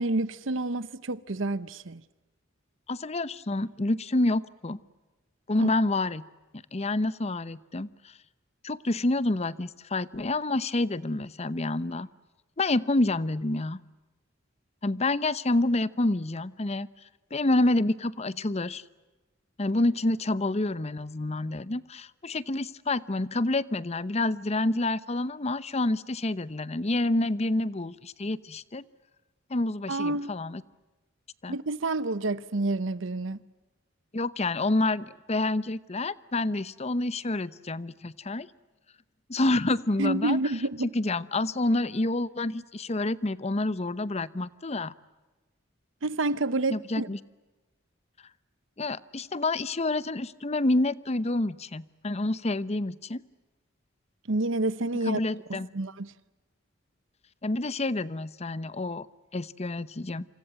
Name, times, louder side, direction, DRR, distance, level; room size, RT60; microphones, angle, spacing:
voice 1, 0.0-2.0 29.9-30.3 31.5-33.4 40.0-40.9 46.0-47.1 54.3-55.2 55.5-56.1, right 2 dB, 75° right, 0.9 m, -29 dB
voice 2, 2.9-4.8 5.5-6.2 6.7-7.9 8.6-12.1 12.6-13.8 14.8-16.9 17.3-18.8 19.6-28.8 29.5-30.6 31.4-31.6 34.1-38.5 39.3-40.4 40.9-44.9 46.7-47.2 48.8-53.2 55.1-55.7 57.4-59.1 59.3-60.3, left 2 dB, 35° left, 0.8 m, -28 dB
28.0 x 26.0 x 7.7 m
head